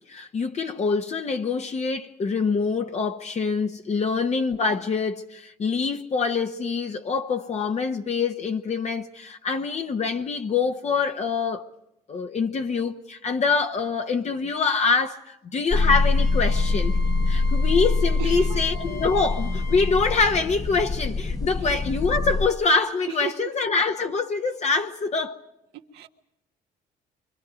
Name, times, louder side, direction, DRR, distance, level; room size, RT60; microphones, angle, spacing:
voice 1, 0.1-11.7 12.1-17.0 17.3-25.4, left 4 dB, 45° left, 1.2 m, -25 dB
sound 1, 15.7-22.5, left 3 dB, 20° left, 1.2 m, -24 dB
Wind instrument woodwind instrument, 16.1-20.3, equal, 30° right, 1.3 m, -42 dB
voice 2, 18.2-18.6 21.6-21.8 23.1-23.5 25.9-26.1, right 11 dB, 85° right, 1.5 m, -34 dB
29.5 x 25.0 x 5.2 m
supercardioid pair, 80°, 16 cm